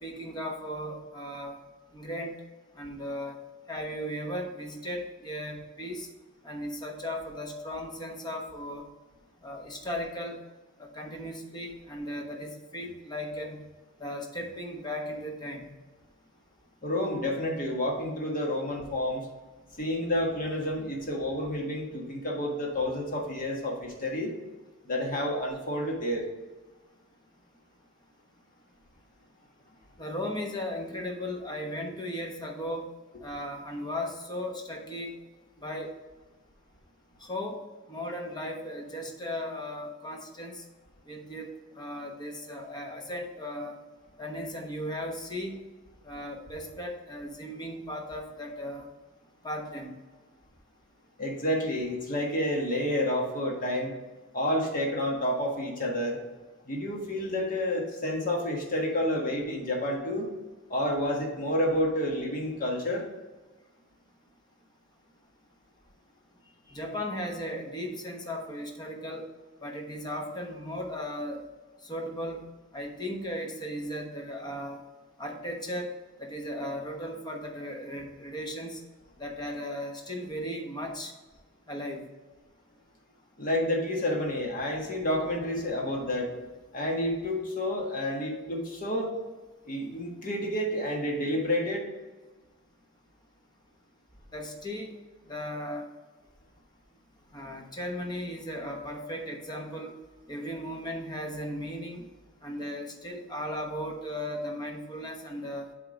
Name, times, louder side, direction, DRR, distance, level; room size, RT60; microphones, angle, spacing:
voice 1, 0.0-1.6 1.9-2.4 2.7-3.4 3.7-6.1 6.4-8.8 9.4-10.4 10.8-13.6 14.0-15.7 30.0-32.8 33.2-35.2 35.6-35.9 37.2-37.6 37.9-40.6 41.1-43.8 44.2-45.6 46.0-48.9 49.4-49.9 66.7-69.2 69.6-71.4 71.8-72.4 72.7-74.8 75.2-75.9 76.2-78.8 79.2-81.1 81.7-82.0 94.3-94.9 95.3-95.8 97.3-99.9 100.3-102.1 102.4-105.7, equal, 20° left, 2 dB, 1.1 m, -36 dB
voice 2, 16.8-19.3 19.8-24.4 24.8-26.3 51.2-53.9 54.3-56.2 56.6-60.3 60.7-63.0 83.4-86.3 86.7-89.2 89.6-91.9, left 1 dB, 40° left, 0 dB, 1.5 m, -29 dB
7.5 x 3.6 x 5.1 m, 1.2 s
head